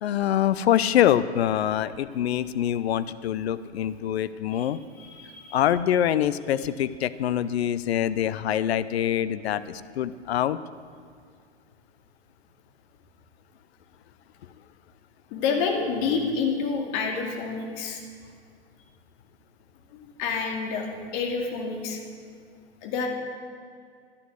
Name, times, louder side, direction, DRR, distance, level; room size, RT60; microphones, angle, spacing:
voice 1, 0.0-4.8 5.5-10.6, left 11 dB, 65° left, 15 dB, 0.7 m, -25 dB
voice 2, 5.0-5.6 15.3-18.0 19.9-22.0 22.8-23.1, left 5 dB, 40° left, 2 dB, 2.5 m, -28 dB
12.0 x 11.5 x 6.4 m, 2.2 s
hypercardioid pair, 120°, 34 cm